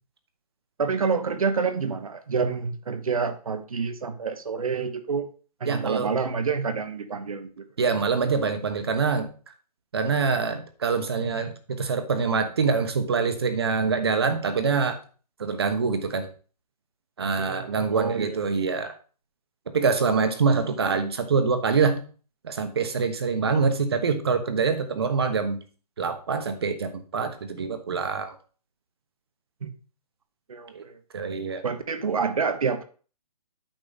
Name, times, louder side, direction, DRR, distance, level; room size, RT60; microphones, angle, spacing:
voice 1, 0.8-5.3 5.6-7.6 17.3-18.4 29.6-29.7 30.5-31.0 31.6-32.8, right 5 dB, 60° right, 10 dB, 1.2 m, -28 dB
voice 2, 5.7-6.1 7.8-9.3 9.9-11.5 11.8-15.0 15.4-16.3 17.2-18.9 19.7-22.0 22.4-25.6 26.0-28.4 30.7-30.8 31.1-31.6, right 5 dB, 40° right, 8 dB, 1.1 m, -25 dB
9.0 x 6.5 x 4.1 m, 0.38 s
hypercardioid pair, 180°, 21 cm